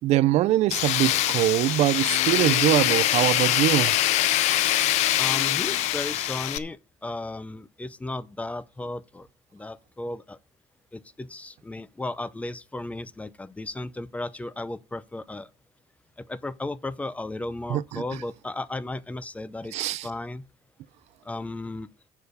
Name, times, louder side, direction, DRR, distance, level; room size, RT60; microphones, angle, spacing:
voice 1, 0.0-3.9 17.7-18.0 19.7-20.1, right 14 dB, 75° right, 0.5 m, -23 dB
Tools, 0.7-6.6, left 14 dB, 90° left, 0.7 m, -23 dB
voice 2, 5.2-9.3 9.5-10.4 10.9-15.5 16.2-20.5 21.2-21.9, left 2 dB, 10° left, 0.6 m, -35 dB
7.0 x 6.7 x 7.9 m
cardioid pair, 145°, 11 cm